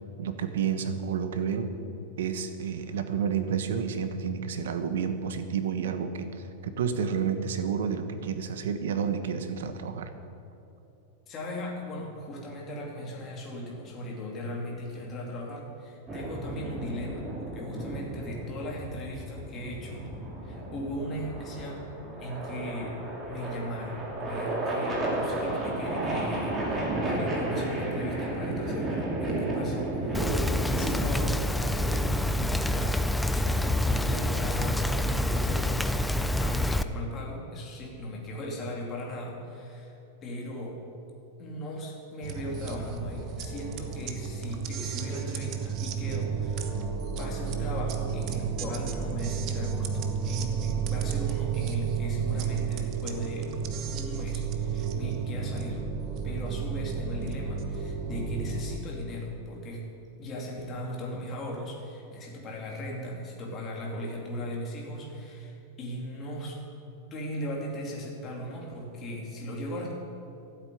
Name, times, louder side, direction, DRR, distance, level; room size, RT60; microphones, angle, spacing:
voice 1, 0.2-1.7 2.2-10.1, right 7 dB, 85° right, 9 dB, 1.3 m, -30 dB
voice 2, 11.3-20.1 20.4-21.9 22.2-23.0 23.3-39.9 40.2-40.8 41.4-46.7 47.1-53.5 53.9-55.8 56.2-59.8 60.2-66.6 67.1-69.9, equal, 20° left, -2 dB, 2.6 m, -38 dB
sound 1, 16.1-31.3, right 1 dB, 15° right, 2.6 m, -33 dB
Rain, 30.1-36.8, left 1 dB, 5° left, 0.3 m, -27 dB
sound 2, 42.2-58.8, right 6 dB, 35° right, 1.1 m, -32 dB
13.5 x 8.2 x 9.3 m, 2.8 s
supercardioid pair, 170°, 0 cm